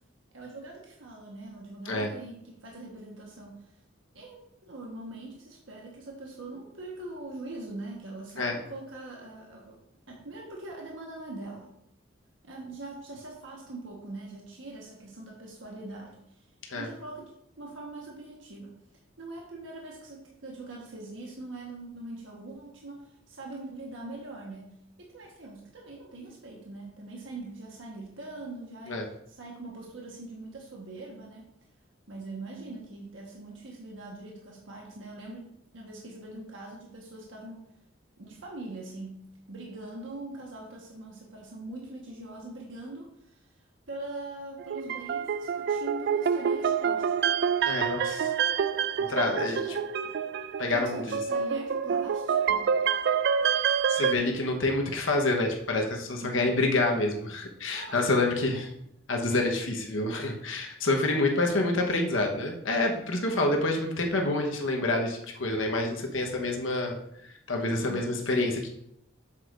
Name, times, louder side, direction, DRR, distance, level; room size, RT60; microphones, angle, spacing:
voice 1, 0.3-3.8 4.1-9.8 10.1-11.7 12.4-16.4 16.7-17.3 17.6-18.7 19.2-24.7 25.0-31.5 32.1-37.6 38.2-47.2 49.2-49.8 50.7-52.7 56.2-56.6 57.7-58.6 63.2-63.5 67.8-68.5, right 2 dB, 80° right, -2 dB, 1.3 m, -42 dB
sound 1, 44.6-54.1, right 7 dB, 60° right, 0.3 m, -27 dB
voice 2, 47.6-48.3 49.0-49.6 50.6-51.2 53.9-58.6 59.1-67.0 67.2-68.7, left 2 dB, 85° left, 2 dB, 1.1 m, -27 dB
7.9 x 7.2 x 2.5 m, 0.77 s
head